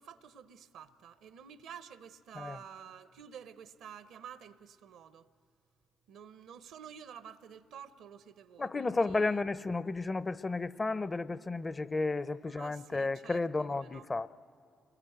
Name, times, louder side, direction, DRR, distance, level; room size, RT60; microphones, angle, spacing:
voice 1, 0.0-5.3 6.1-9.4 12.4-14.1, right 8 dB, 70° right, 0.7 m, -50 dB
voice 2, 8.6-14.3, left 3 dB, 30° left, 0.7 m, -32 dB
27.5 x 21.5 x 8.0 m
hypercardioid pair, 40°, 0 cm